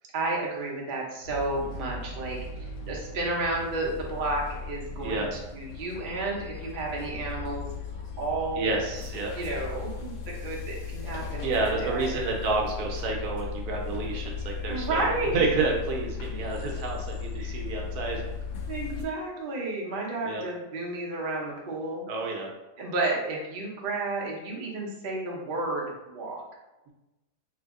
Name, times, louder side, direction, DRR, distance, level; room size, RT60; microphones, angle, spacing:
voice 1, 0.1-7.7 8.2-8.7 9.3-12.2 14.7-15.6 16.3-16.6 17.4-17.6 18.7-22.0 22.8-26.4, right 2 dB, 50° right, -3 dB, 0.6 m, -32 dB
sound 1, 1.2-19.1, left 5 dB, 70° left, 0.9 m, -37 dB
voice 2, 8.6-9.3 11.4-18.2 20.2-20.4 22.1-22.5, right 3 dB, 70° right, 0 dB, 1.1 m, -29 dB
2.9 x 2.6 x 3.5 m, 1.0 s
omnidirectional pair, 1.8 m